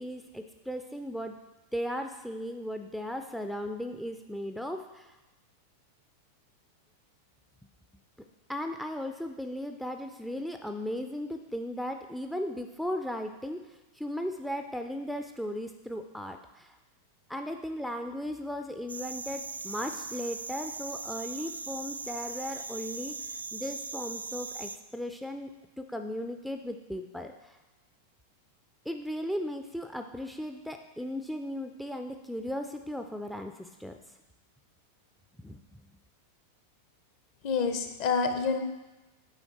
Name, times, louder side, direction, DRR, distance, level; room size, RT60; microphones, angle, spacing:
voice 1, 0.0-1.4 1.7-5.2 8.5-16.8 17.3-23.1 23.5-25.5 25.8-27.6 28.9-34.0 35.4-35.6, equal, ahead, 6 dB, 0.4 m, -36 dB
sound 1, 18.9-24.8, right 4 dB, 80° right, 0.3 m, -39 dB
voice 2, 37.4-38.6, left 5 dB, 45° left, 7 dB, 0.8 m, -27 dB
8.8 x 4.4 x 4.2 m, 1.1 s
figure-of-eight pair, 90°, 0 cm